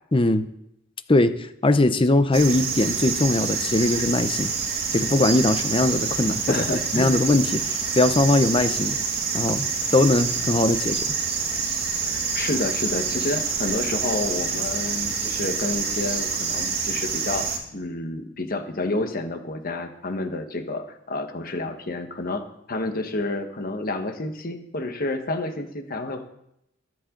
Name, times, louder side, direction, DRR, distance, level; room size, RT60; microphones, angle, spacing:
voice 1, 0.1-0.5 1.1-4.5 4.9-6.7 6.9-9.0 9.3-9.7 9.9-11.0, left 2 dB, 25° left, 11 dB, 0.7 m, -21 dB
sound 1, 2.3-17.6, right 5 dB, 50° right, 2.3 m, -27 dB
voice 2, 6.5-7.1 12.1-26.3, left 2 dB, 45° left, 6 dB, 1.4 m, -29 dB
21.5 x 7.7 x 3.9 m, 0.78 s
head